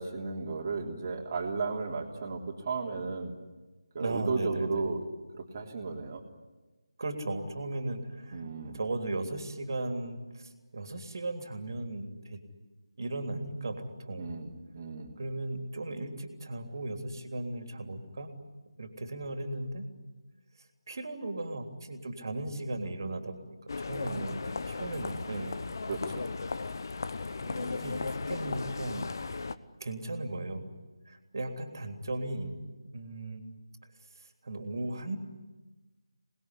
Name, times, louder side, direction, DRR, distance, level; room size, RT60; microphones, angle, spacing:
voice 1, 0.0-3.4 3.9-5.0 5.3-6.2 8.3-8.8 14.1-15.1 25.9-26.3, right 4 dB, 30° right, 1 dB, 3.4 m, -34 dB
voice 2, 4.0-4.8 7.0-12.4 13.0-14.3 15.2-18.3 18.8-19.9 20.9-25.6 27.4-29.1 29.8-30.7 31.1-32.6 32.9-33.4 34.4-35.2, right 2 dB, 50° right, 5 dB, 3.4 m, -36 dB
sound 1, 23.7-29.5, left 4 dB, 50° left, 1.1 m, -36 dB
27.0 x 20.5 x 9.8 m, 1.2 s
figure-of-eight pair, 155°, 3 cm